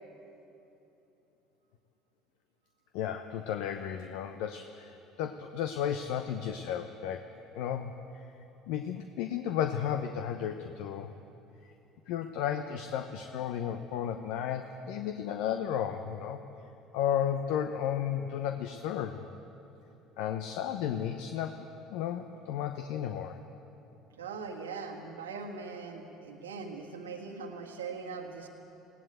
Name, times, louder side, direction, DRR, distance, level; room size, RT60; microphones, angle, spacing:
voice 1, 2.9-7.3 7.5-7.9 8.7-11.1 12.1-16.4 16.9-19.2 20.2-23.4, left 9 dB, 65° left, 7 dB, 0.8 m, -33 dB
voice 2, 24.2-28.5, right 4 dB, 85° right, 3 dB, 1.7 m, -41 dB
20.0 x 17.0 x 8.1 m, 2.9 s
hypercardioid pair, 65°, 0 cm